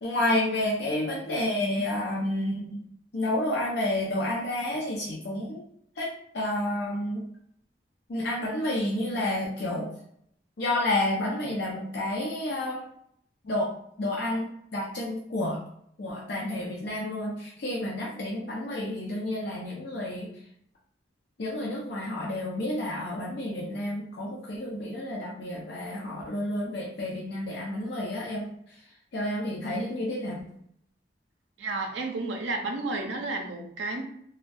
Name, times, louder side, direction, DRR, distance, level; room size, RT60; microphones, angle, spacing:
voice 1, 0.0-2.8 3.1-5.6 6.0-6.1 6.3-7.2 8.1-9.9 10.6-12.8 13.4-13.7 14.0-15.6 16.0-20.3 21.4-28.5 29.1-30.4, left 1 dB, 60° left, -3 dB, 0.4 m, -30 dB
voice 2, 31.6-34.0, right 2 dB, 85° right, 3 dB, 0.5 m, -31 dB
2.2 x 2.1 x 2.5 m, 0.70 s
head